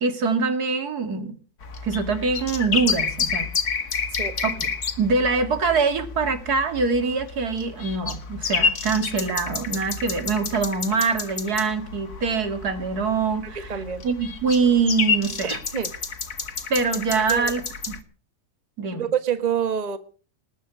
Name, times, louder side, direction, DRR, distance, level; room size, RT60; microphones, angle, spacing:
voice 1, 0.0-1.4 1.8-3.5 4.4-4.7 5.0-15.6 16.7-18.0 18.8-19.1, right 4 dB, 90° right, 2.6 m, -24 dB
sound 1, 1.6-18.0, left 5 dB, 85° left, 2.3 m, -30 dB
voice 2, 4.1-4.4 13.4-14.0 15.7-15.9 17.2-17.5 19.0-20.0, right 8 dB, 30° right, 1.3 m, -27 dB
20.0 x 8.3 x 8.3 m
omnidirectional pair, 1.6 m